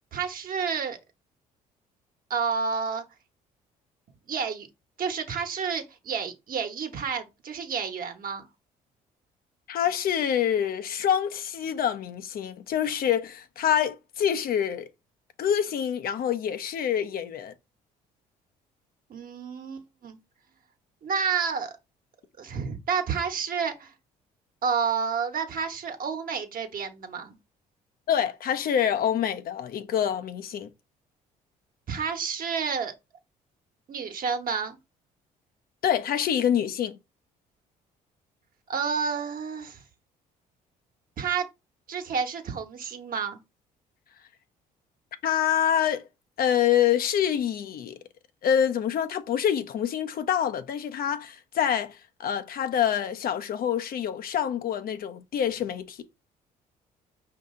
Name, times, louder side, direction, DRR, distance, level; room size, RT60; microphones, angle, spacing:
voice 1, 0.1-1.0 2.3-3.0 4.3-4.7 5.0-8.5 19.1-20.2 21.0-21.7 22.4-23.9 24.6-27.4 31.9-32.9 33.9-34.8 38.7-39.8 41.2-41.5 41.9-43.4, right 6 dB, 55° right, 1.2 m, -30 dB
voice 2, 9.7-14.9 15.4-17.5 28.1-30.7 35.8-37.0 45.2-46.0 46.4-48.0 48.4-56.0, left 9 dB, 60° left, 0.6 m, -26 dB
5.3 x 2.7 x 3.7 m
supercardioid pair, 65°, 17 cm